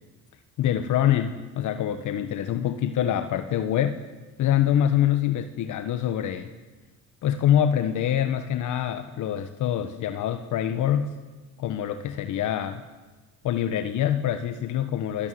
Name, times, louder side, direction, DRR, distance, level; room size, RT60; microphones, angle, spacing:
voice 1, 0.6-4.0 4.4-6.5 7.2-11.1 11.6-12.8 13.4-15.3, left 10 dB, 80° left, 9 dB, 1.3 m, -25 dB
28.0 x 18.0 x 9.3 m, 1.3 s
cardioid pair, 90°, 30 cm